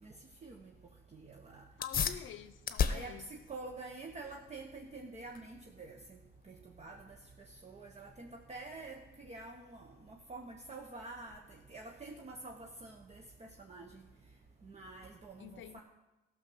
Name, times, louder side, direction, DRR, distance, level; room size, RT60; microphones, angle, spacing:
voice 1, 0.4-0.7 1.1-1.6 2.9-6.2 6.5-7.2 7.6-11.4 11.7-14.0 14.6-15.8, right 3 dB, 35° right, 1 dB, 1.1 m, -48 dB
sound 1, 1.7-11.7, left 7 dB, 45° left, 0.8 m, -40 dB
voice 2, 1.8-3.3 15.4-15.8, left 11 dB, 80° left, 13 dB, 0.7 m, -48 dB
13.5 x 6.2 x 6.3 m, 1.0 s
cardioid pair, 90°, 20 cm